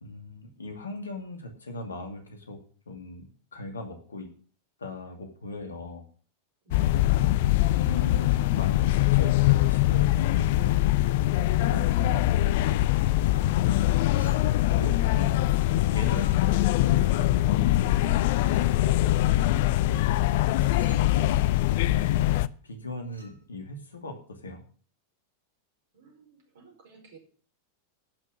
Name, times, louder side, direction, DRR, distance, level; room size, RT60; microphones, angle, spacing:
voice 1, 0.0-2.6 2.9-4.3 4.8-6.0 6.9-7.3 7.7-10.8 11.3-13.2 14.1-15.3 15.7-18.2 18.6-21.4 21.9-24.6, left 2 dB, 75° left, 5 dB, 2.3 m, -40 dB
voice 2, 6.6-7.2 11.6-11.8 25.9-27.2, right 2 dB, 55° right, 1 dB, 4.7 m, -53 dB
sound 1, 6.7-22.5, left 15 dB, 50° left, 0.4 m, -23 dB
Chink clink, 14.2-14.7 16.1-16.8 18.5-18.8 20.5-21.1 23.0-23.4, equal, 90° right, 2.5 m, -52 dB
13.5 x 6.0 x 7.6 m, 0.43 s
figure-of-eight pair, 90°, 0 cm